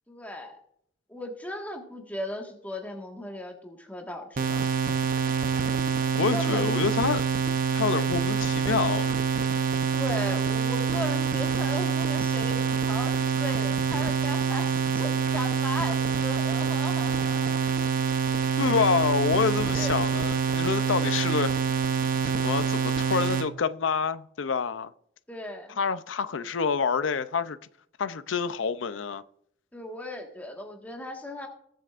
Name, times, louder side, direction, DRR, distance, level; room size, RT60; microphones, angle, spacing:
voice 1, 0.1-0.6 1.1-4.6 6.3-6.8 10.0-17.6 19.7-20.0 25.3-25.8 29.7-31.5, left 1 dB, 10° left, 1.6 m, -37 dB
sound 1, 4.4-23.5, right 6 dB, 50° right, 0.7 m, -26 dB
voice 2, 6.2-7.2 7.7-9.1 18.6-21.5 22.2-24.9 25.8-27.6 28.0-29.2, left 5 dB, 80° left, 0.5 m, -27 dB
20.0 x 7.7 x 2.5 m
head